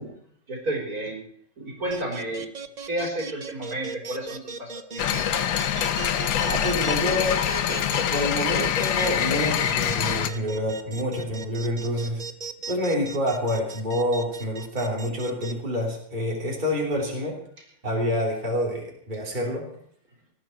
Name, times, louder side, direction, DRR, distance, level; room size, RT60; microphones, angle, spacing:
voice 1, 0.5-1.2 1.6-2.5 2.8-5.5 6.4-6.5 7.8-8.0, right 1 dB, 50° right, -1 dB, 4.3 m, -32 dB
sound 1, 1.9-15.5, right 5 dB, 75° right, 0.3 m, -37 dB
sound 2, 5.0-10.3, left 9 dB, 85° left, 1.7 m, -25 dB
voice 2, 6.4-7.4 8.1-12.2 12.7-17.4 17.8-19.7, equal, 25° right, -2 dB, 3.3 m, -27 dB
19.0 x 13.5 x 4.5 m, 0.63 s
omnidirectional pair, 2.0 m